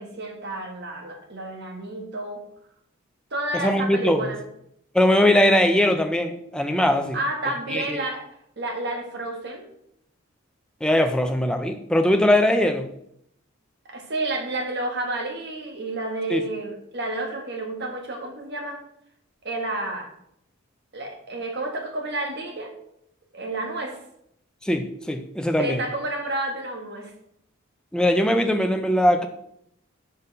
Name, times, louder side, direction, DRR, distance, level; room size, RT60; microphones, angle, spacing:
voice 1, 0.0-2.4 3.3-4.4 7.1-8.2 8.6-9.6 13.9-18.8 19.4-20.1 20.9-22.7 23.3-24.0 25.6-27.1, right 2 dB, 50° right, 2 dB, 1.3 m, -30 dB
voice 2, 3.5-4.3 4.9-7.2 7.7-8.0 10.8-12.9 16.3-16.4 24.6-25.8 27.9-29.3, left 1 dB, 5° left, 6 dB, 0.5 m, -21 dB
5.3 x 4.3 x 5.3 m, 0.73 s
head